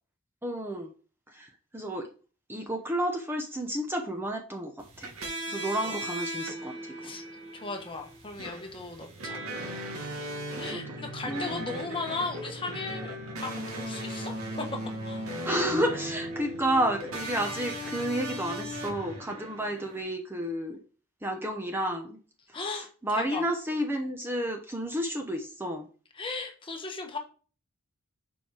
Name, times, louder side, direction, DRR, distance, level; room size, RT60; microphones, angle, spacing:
voice 1, 0.4-0.9 1.3-2.1 2.5-4.7 5.0-5.1 5.5-6.9 10.5-10.8 11.3-11.5 15.4-20.8 21.2-22.2 22.5-25.9, right 1 dB, 10° right, 3 dB, 0.8 m, -31 dB
sound 1, 4.8-20.0, right 1 dB, 85° right, 1.8 m, -38 dB
voice 2, 7.5-9.5 10.6-14.3 15.0-15.2 22.5-23.4 26.1-27.2, left 3 dB, 25° left, 3 dB, 1.2 m, -37 dB
sound 2, 9.2-19.2, left 2 dB, 55° right, 1.9 m, -46 dB
7.0 x 4.7 x 4.9 m, 0.38 s
head